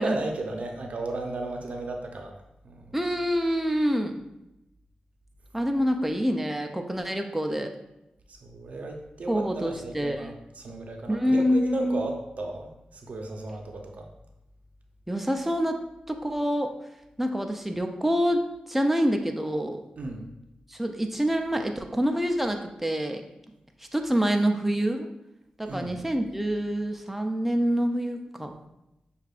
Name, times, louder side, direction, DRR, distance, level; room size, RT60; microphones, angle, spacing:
voice 1, 0.0-2.3 2.6-3.0 8.4-14.1 20.0-20.3 25.7-25.9, right 2 dB, 60° right, 3 dB, 0.6 m, -34 dB
voice 2, 2.9-4.2 5.5-7.7 9.3-10.3 11.1-12.1 15.1-15.8 16.1-16.7 17.2-19.8 20.7-23.2 23.9-25.1 25.6-28.5, equal, 5° right, 4 dB, 0.4 m, -26 dB
6.4 x 2.4 x 2.4 m, 0.89 s
cardioid pair, 55°, 3 cm